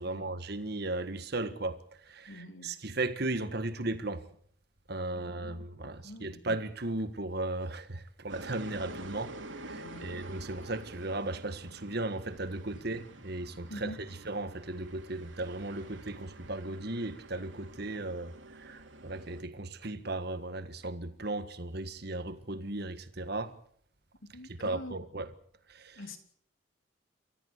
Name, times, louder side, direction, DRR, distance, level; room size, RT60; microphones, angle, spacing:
voice 1, 0.0-4.2 4.9-13.9 14.2-23.5 24.6-25.2 25.7-26.0, right 2 dB, 55° right, 1.7 m, -36 dB
voice 2, 2.3-2.7 5.1-6.4 9.8-10.2 12.7-12.8 13.7-14.0 24.3-24.9 25.9-26.2, left 1 dB, 90° left, 3.0 m, -46 dB
sound 1, 8.3-19.4, right 2 dB, 70° right, 2.8 m, -48 dB
29.0 x 14.0 x 8.2 m
head